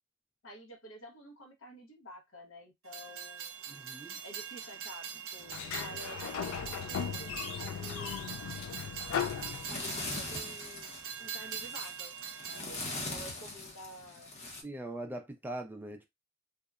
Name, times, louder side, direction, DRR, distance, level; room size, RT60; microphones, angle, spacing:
voice 1, 0.4-3.5 4.2-8.5 9.7-10.9 11.2-12.1 12.4-14.3, equal, 70° left, 0.7 m, -50 dB
Train, 2.9-12.6, right 7 dB, 75° right, 0.5 m, -43 dB
voice 2, 3.7-4.2 14.6-16.1, right 1 dB, 10° right, 0.3 m, -41 dB
Sliding door, 5.5-10.2, left 8 dB, 90° left, 0.3 m, -37 dB
sound 1, 9.1-14.6, left 2 dB, 35° left, 0.6 m, -42 dB
2.7 x 2.1 x 2.3 m
head